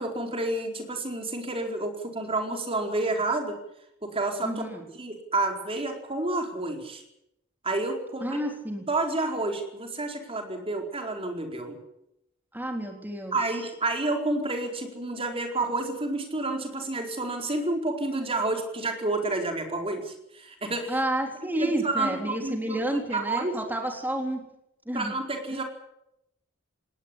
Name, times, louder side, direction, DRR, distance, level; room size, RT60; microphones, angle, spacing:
voice 1, 0.0-3.6 4.0-4.5 5.0-7.0 7.6-8.4 8.9-11.8 13.3-21.0 21.5-22.8 23.1-23.6 24.9-25.6, right 2 dB, 30° right, 3 dB, 4.5 m, -29 dB
voice 2, 4.4-4.9 8.2-8.9 12.5-13.4 20.9-24.4 24.9-25.1 25.5-25.6, right 1 dB, 10° right, 2 dB, 3.6 m, -30 dB
19.0 x 19.0 x 9.8 m, 0.81 s
head